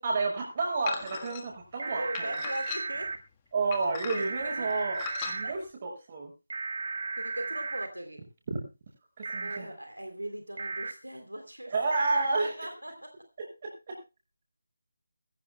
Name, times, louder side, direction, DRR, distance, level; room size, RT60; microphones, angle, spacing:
voice 1, 0.0-2.3 3.5-6.3 8.5-8.6 9.2-9.7 11.7-12.5 13.4-14.0, right 3 dB, 30° right, 1 dB, 6.7 m, -31 dB
sound 1, 0.9-1.4 2.1-3.1 3.7-4.4 5.0-5.4, left 7 dB, 20° left, 1.4 m, -38 dB
sound 2, 1.8-3.2 4.1-5.5 6.5-7.9 9.2-9.6 10.6-10.9 11.9-12.3, right 3 dB, 55° right, 1.6 m, -35 dB
voice 2, 1.9-3.1 4.4-4.7 5.4-5.5 7.2-8.2 9.4-11.7 12.4-12.9, right 1 dB, 85° right, 6 dB, 3.1 m, -39 dB
21.5 x 15.5 x 2.2 m, 0.28 s
figure-of-eight pair, 160°, 0 cm